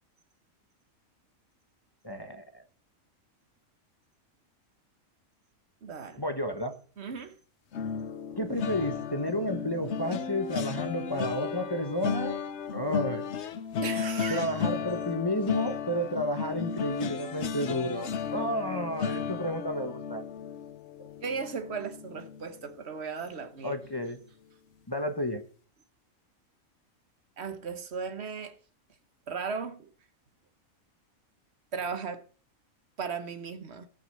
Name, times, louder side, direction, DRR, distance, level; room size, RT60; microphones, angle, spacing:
voice 1, 2.0-2.7 6.2-6.7 8.4-12.4 12.7-13.2 14.3-20.2 21.0-21.1 23.6-24.2 24.9-25.4, equal, 20° left, 1.2 m, -31 dB
voice 2, 5.8-6.2 7.0-7.4 13.8-14.5 21.2-23.8 27.4-28.6 29.3-29.9 31.7-32.2 33.0-33.9, right 5 dB, 50° right, 1.3 m, -36 dB
sound 1, 7.7-22.9 23.3-23.5 23.8-24.0, left 7 dB, 55° left, 1.0 m, -35 dB
17.0 x 6.3 x 6.7 m
omnidirectional pair, 1.5 m